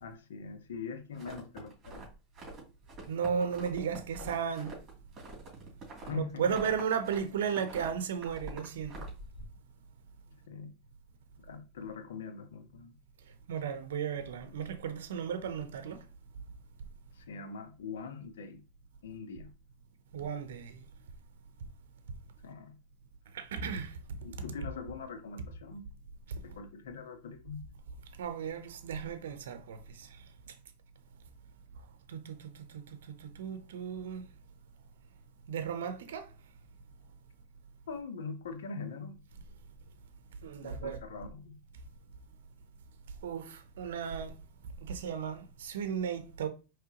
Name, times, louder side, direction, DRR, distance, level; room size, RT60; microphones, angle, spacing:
voice 1, 0.0-2.0 5.9-6.5 10.3-10.7 11.4-13.0 17.1-18.6 19.0-19.5 22.4-22.8 24.2-25.9 26.4-27.7 37.9-39.2 40.6-41.6, left 5 dB, 85° left, 0.8 m, -42 dB
sound 1, 1.1-2.6 2.9-7.2 7.5-9.4, right 2 dB, 30° right, 2.6 m, -46 dB
voice 2, 3.1-4.7 6.1-9.0 13.5-16.0 20.1-20.9 23.3-24.0 28.2-30.2 32.1-34.3 35.5-36.3 40.4-41.0 43.2-44.4 44.8-46.5, right 7 dB, 85° right, 0.7 m, -35 dB
4.7 x 3.2 x 2.9 m
supercardioid pair, 120°, 0 cm